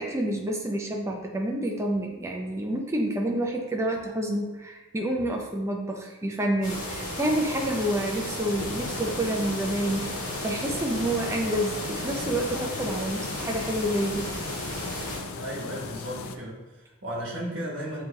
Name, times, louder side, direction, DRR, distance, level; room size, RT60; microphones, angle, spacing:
voice 1, 0.0-10.1 10.4-14.3, right 1 dB, 15° right, 1 dB, 0.4 m, -28 dB
sound 1, 6.6-15.2, left 1 dB, 35° left, 1.4 m, -34 dB
sound 2, 8.6-16.4, left 4 dB, 70° left, 0.4 m, -38 dB
voice 2, 15.4-18.0, equal, 60° right, -4 dB, 1.2 m, -35 dB
6.9 x 2.9 x 2.3 m, 1.2 s
head